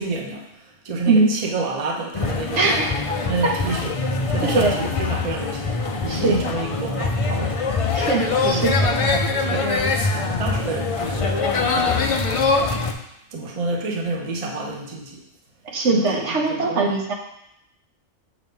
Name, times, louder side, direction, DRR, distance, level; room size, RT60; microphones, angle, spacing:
voice 1, 0.0-2.8 3.2-3.9 4.3-7.6 8.3-12.6 13.3-15.2 15.9-17.0, right 3 dB, 35° right, 0 dB, 0.8 m, -29 dB
sound 1, 2.1-12.9, left 3 dB, 60° left, 0.3 m, -23 dB
voice 2, 2.6-2.9 3.4-3.5 4.4-4.8 6.1-6.3 7.9-8.7 15.6-17.1, right 3 dB, 70° right, 0 dB, 1.2 m, -20 dB
6.6 x 3.0 x 5.3 m, 0.80 s
omnidirectional pair, 1.3 m